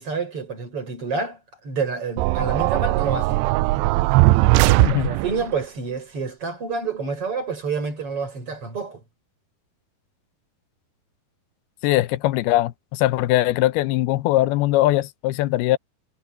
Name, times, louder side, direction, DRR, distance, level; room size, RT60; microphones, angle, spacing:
voice 1, 0.0-3.5 4.6-9.0, right 4 dB, 35° right, 6.6 m, -28 dB
sound 1, 2.2-5.5, right 19 dB, 90° right, 2.7 m, -19 dB
voice 2, 4.8-5.1 11.8-15.8, left 16 dB, 80° left, 2.6 m, -21 dB
omnidirectional pair, 4.7 m